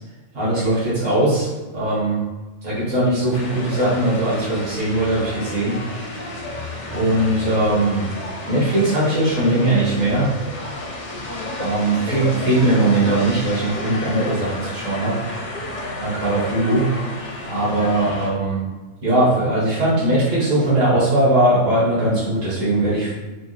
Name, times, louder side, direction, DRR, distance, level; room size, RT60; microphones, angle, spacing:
voice 1, 0.3-2.2 2.6-5.8 6.9-8.0 8.5-10.3 11.6-15.1 16.0-16.9 17.5-18.7 19.0-23.1, right 1 dB, 60° right, -9 dB, 2.0 m, -20 dB
sound 1, 3.3-18.3, left 1 dB, 40° left, 0.7 m, -31 dB
5.2 x 2.2 x 3.2 m, 1.2 s
omnidirectional pair, 1.5 m